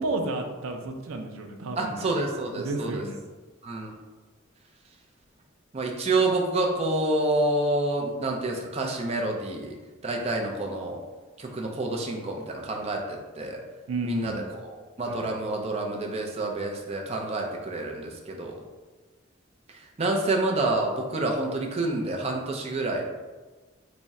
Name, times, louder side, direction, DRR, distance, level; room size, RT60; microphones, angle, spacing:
voice 1, 0.0-2.1 2.6-3.2 13.9-14.4 15.0-15.2, right 2 dB, 90° right, 5 dB, 0.4 m, -32 dB
voice 2, 1.8-3.0 3.6-3.9 5.7-9.7 10.0-11.0 11.4-13.6 14.0-14.3 14.6-18.5 20.0-23.0, right 2 dB, 30° right, 0 dB, 0.5 m, -28 dB
3.5 x 2.1 x 4.0 m, 1.3 s
head